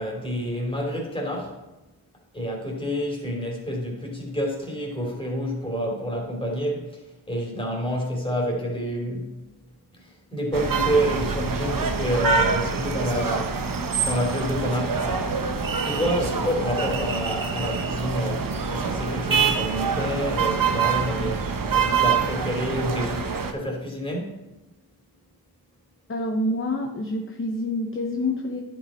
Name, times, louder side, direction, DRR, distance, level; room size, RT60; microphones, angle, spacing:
voice 1, 0.0-1.6 2.3-9.4 9.9-15.1 15.8-24.5, equal, 15° left, 3.1 m, -28 dB
sound 1, 10.5-23.5, right 5 dB, 55° right, 0.9 m, -25 dB
voice 2, 26.1-28.6, left 1 dB, 30° left, 0.9 m, -27 dB
10.0 x 5.5 x 4.3 m
cardioid pair, 60°, 40 cm